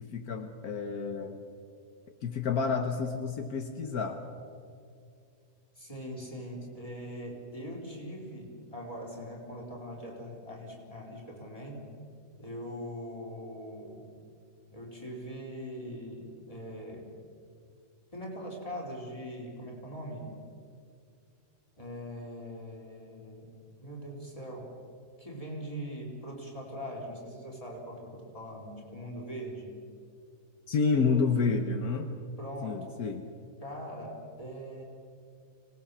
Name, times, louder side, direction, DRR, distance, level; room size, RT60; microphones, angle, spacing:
voice 1, 0.0-1.4 2.2-4.2 30.7-32.1 32.6-33.2, left 5 dB, 75° left, 6 dB, 1.6 m, -29 dB
voice 2, 5.7-11.9 12.4-14.1 14.7-17.1 18.1-20.4 21.8-23.5 23.8-24.7 25.2-29.8 32.4-32.9 33.6-34.8, equal, 20° left, -1 dB, 4.6 m, -41 dB
25.5 x 18.5 x 7.3 m, 2.4 s
omnidirectional pair, 1.6 m